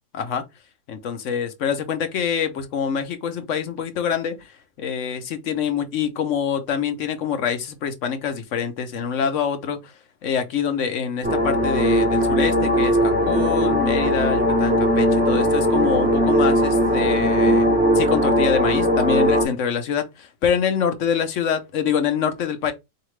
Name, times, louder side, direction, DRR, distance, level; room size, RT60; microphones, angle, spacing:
voice 1, 0.1-0.4 0.9-4.5 4.8-9.9 10.2-17.7 17.9-22.7, left 7 dB, 65° left, 1.0 m, -25 dB
sound 1, 11.2-19.5, equal, 10° right, 0.5 m, -19 dB
4.3 x 2.8 x 3.1 m
omnidirectional pair, 1.4 m